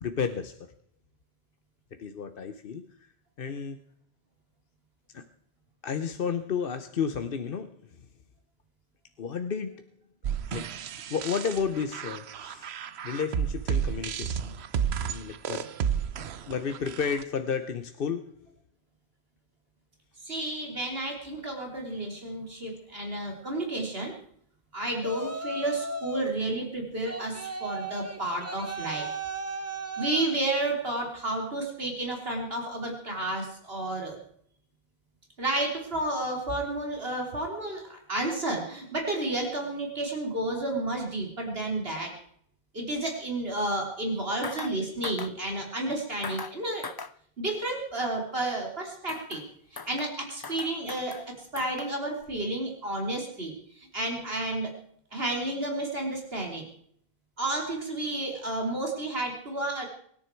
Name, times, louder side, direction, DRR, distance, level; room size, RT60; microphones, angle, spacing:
voice 1, 0.0-0.6 2.0-2.9 3.4-3.8 5.1-5.3 5.8-7.7 9.2-9.8 10.5-10.7 11.1-12.7 13.0-14.5 15.0-15.7 16.5-18.3, left 6 dB, 65° left, 9 dB, 1.0 m, -32 dB
sound 1, 10.2-17.2, right 8 dB, 90° right, 1.0 m, -32 dB
voice 2, 20.2-24.1 24.7-29.1 30.0-34.2 35.4-42.1 42.7-46.9 47.4-49.4 49.9-54.7 55.1-56.6 57.4-59.9, right 2 dB, 70° right, 0 dB, 3.4 m, -31 dB
Yell, 25.0-26.4 27.0-30.4, right 3 dB, 15° right, 1.1 m, -36 dB
sound 2, 44.4-44.8 45.0-45.3 46.2-46.6 46.8-47.1 49.1-49.5 49.8-50.2 50.4-51.3 51.6-52.0 52.2-52.3, left 4 dB, 30° left, 0.5 m, -40 dB
23.5 x 10.0 x 4.5 m, 0.64 s
omnidirectional pair, 1.0 m